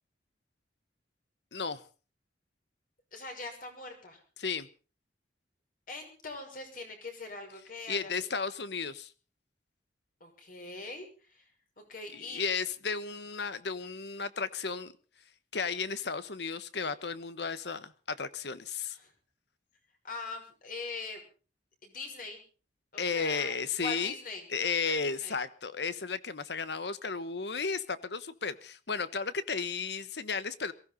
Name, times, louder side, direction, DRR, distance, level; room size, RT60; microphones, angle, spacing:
voice 1, 1.5-1.8 4.4-4.7 7.9-9.1 12.1-14.9 15.5-19.0 23.0-24.1 24.5-30.7, left 5 dB, 70° left, 1.2 m, -34 dB
voice 2, 3.1-4.2 5.9-8.1 10.2-12.5 18.9-19.1 20.0-21.2 21.8-22.4 22.9-24.5 24.8-25.4, left 3 dB, 50° left, 6.0 m, -42 dB
22.5 x 15.5 x 4.0 m
head